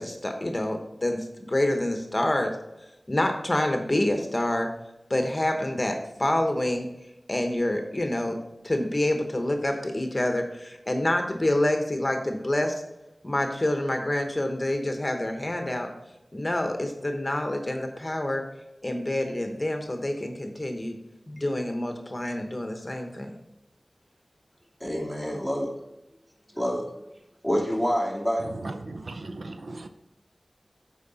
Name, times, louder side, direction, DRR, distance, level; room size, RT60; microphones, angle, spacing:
voice 1, 0.0-2.5 3.1-4.7 5.1-6.9 7.3-8.4 8.6-12.8 13.2-15.9 16.3-18.4 18.8-21.0 21.3-23.3, left 1 dB, 30° left, 4 dB, 1.0 m, -27 dB
voice 2, 24.8-25.7 26.5-26.9 27.4-28.5, equal, 10° right, -3 dB, 2.7 m, -27 dB
voice 3, 28.4-29.9, right 2 dB, 80° right, 8 dB, 0.4 m, -37 dB
8.2 x 4.7 x 4.0 m, 0.92 s
wide cardioid pair, 40°, 0 cm